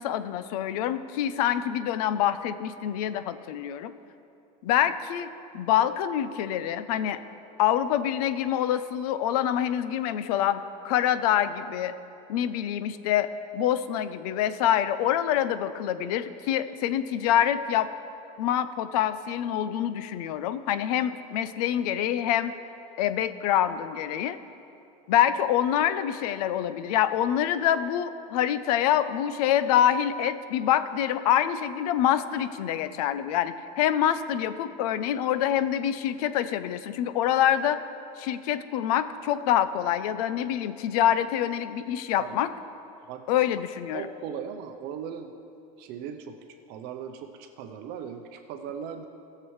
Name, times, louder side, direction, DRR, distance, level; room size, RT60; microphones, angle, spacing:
voice 1, 0.0-3.9 4.6-5.3 5.5-7.2 7.6-11.9 12.3-17.9 18.4-22.5 23.0-24.4 25.1-37.8 38.2-42.5 43.3-44.1, left 10 dB, 75° left, 13 dB, 0.6 m, -26 dB
voice 2, 43.9-45.3 45.8-46.4 46.7-49.1, right 8 dB, 55° right, 6 dB, 0.7 m, -38 dB
19.0 x 6.8 x 3.2 m, 2.7 s
supercardioid pair, 125°, 20 cm